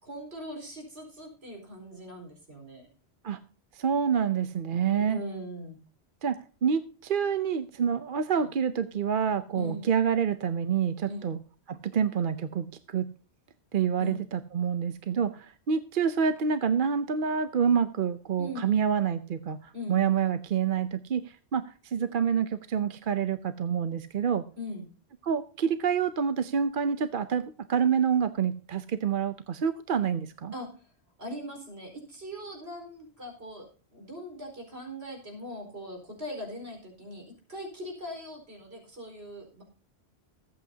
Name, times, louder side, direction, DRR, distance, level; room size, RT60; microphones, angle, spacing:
voice 1, 0.0-2.9 5.1-5.8 8.4-8.5 9.5-9.9 11.0-11.3 14.0-14.2 18.4-18.9 19.7-20.0 24.6-24.9 30.5-30.9 31.2-39.6, equal, 80° right, 2 dB, 4.8 m, -40 dB
voice 2, 3.7-5.2 6.2-6.4 6.6-11.4 11.7-13.1 13.7-24.4 25.2-27.4 27.7-30.5, right 7 dB, 55° right, 11 dB, 0.8 m, -27 dB
22.0 x 8.5 x 2.8 m, 0.39 s
omnidirectional pair, 1.1 m